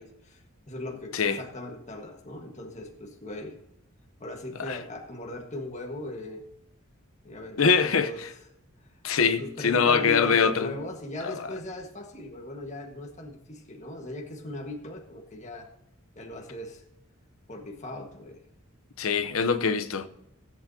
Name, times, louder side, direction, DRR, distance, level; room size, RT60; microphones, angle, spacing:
voice 1, 0.0-3.5 4.2-6.4 7.2-8.2 8.8-8.9 9.4-15.7 16.1-16.8 17.5-18.4, left 2 dB, 35° left, 1.6 m, -38 dB
voice 2, 7.6-8.3 9.0-10.7 11.2-11.3 19.0-20.1, left 5 dB, 80° left, 0.8 m, -23 dB
16.5 x 8.6 x 2.8 m
head